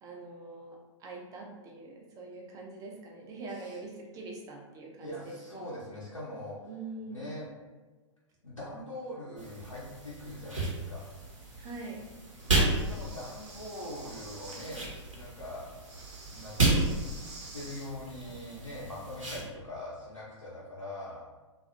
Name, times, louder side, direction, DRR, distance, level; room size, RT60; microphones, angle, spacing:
voice 1, 0.0-5.6 6.6-7.3 11.6-12.0, right 3 dB, 20° right, -1 dB, 0.5 m, -44 dB
voice 2, 5.0-6.7 7.1-7.5 8.4-11.1 12.4-15.6 16.3-16.9 17.5-21.2, left 1 dB, 90° left, -9 dB, 0.7 m, -42 dB
sound 1, 9.4-19.4, right 2 dB, 80° right, 0.9 m, -33 dB
Breathing, 12.4-14.8 15.8-17.9, right 2 dB, 55° right, 0.9 m, -49 dB
2.6 x 2.4 x 2.5 m, 1.2 s
figure-of-eight pair, 105°, 16 cm